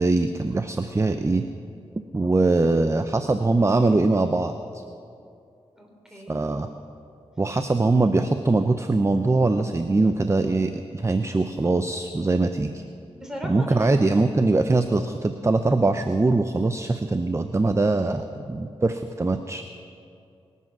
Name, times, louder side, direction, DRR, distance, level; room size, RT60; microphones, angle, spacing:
voice 1, 0.0-1.4 2.1-4.8 6.3-6.7 7.4-12.8 13.4-19.6, right 3 dB, 25° right, 8 dB, 0.6 m, -22 dB
voice 2, 2.4-3.0 5.8-6.4 13.1-14.0, equal, 5° right, 0 dB, 3.6 m, -39 dB
23.0 x 8.3 x 6.1 m, 2.5 s
cardioid pair, 65°, 11 cm